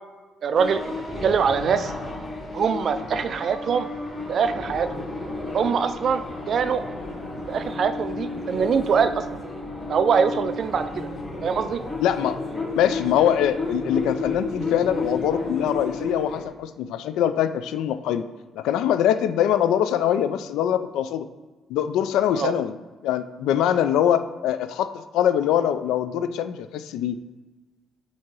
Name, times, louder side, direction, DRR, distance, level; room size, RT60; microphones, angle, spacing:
voice 1, 0.4-0.9 1.2-1.9 2.5-3.9 4.3-5.0 5.5-6.2 6.5-6.8 7.5-9.2 9.9-11.1 11.4-11.8 22.3-22.5, right 6 dB, 50° right, 10 dB, 0.4 m, -23 dB
sound 1, 0.5-16.5, left 2 dB, 20° left, 1.6 m, -32 dB
voice 2, 12.0-12.4 12.7-18.2 18.5-21.3 21.7-22.7 23.0-27.2, left 10 dB, 85° left, 11 dB, 0.3 m, -23 dB
7.4 x 2.8 x 4.5 m, 1.3 s
cardioid pair, 110°, 0 cm